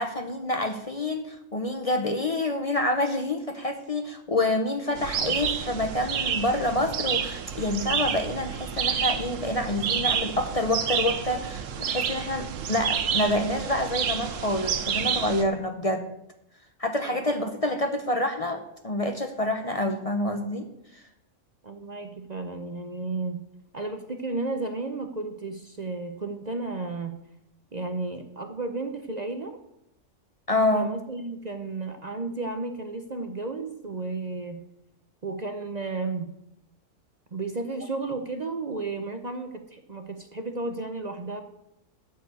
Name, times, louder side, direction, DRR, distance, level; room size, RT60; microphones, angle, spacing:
voice 1, 0.0-16.1 16.8-20.7 30.5-30.9, left 1 dB, 35° left, 6 dB, 0.8 m, -27 dB
sound 1, 5.0-15.4, right 7 dB, 80° right, 1.2 m, -29 dB
voice 2, 21.6-23.4 23.7-27.2 27.7-29.5 30.7-34.6 35.2-36.3 37.3-41.4, right 3 dB, 40° right, 6 dB, 0.7 m, -33 dB
12.5 x 4.8 x 8.2 m, 0.83 s
omnidirectional pair, 1.3 m